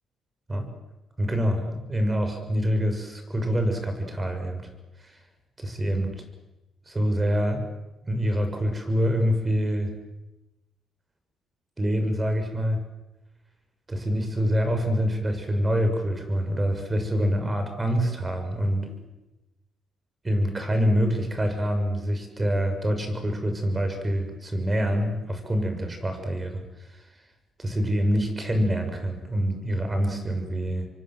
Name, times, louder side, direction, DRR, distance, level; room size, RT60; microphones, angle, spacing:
voice 1, 1.2-4.7 5.0-5.2 5.6-6.2 6.9-7.6 8.0-9.9 11.8-12.8 13.9-18.9 20.2-26.6 26.9-27.0 27.6-30.9, equal, 20° right, 6 dB, 6.6 m, -26 dB
26.5 x 24.0 x 7.8 m, 0.99 s
cardioid pair, 90°, 0 cm